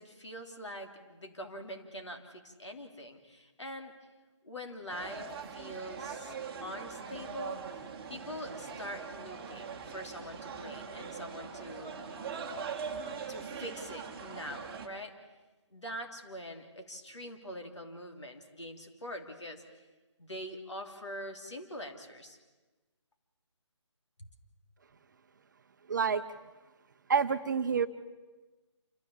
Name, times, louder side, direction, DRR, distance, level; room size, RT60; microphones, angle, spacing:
voice 1, 0.0-3.9 4.4-6.3 6.6-7.6 8.1-11.9 13.3-15.2 15.7-19.8 20.2-22.4 24.2-24.3, equal, 70° left, 4 dB, 3.1 m, -44 dB
sound 1, 4.9-14.9, right 6 dB, 15° right, 1.5 m, -42 dB
voice 2, 25.9-26.2 27.1-27.9, right 6 dB, 40° right, 11 dB, 0.8 m, -27 dB
28.5 x 14.0 x 7.2 m, 1.2 s
figure-of-eight pair, 150°, 16 cm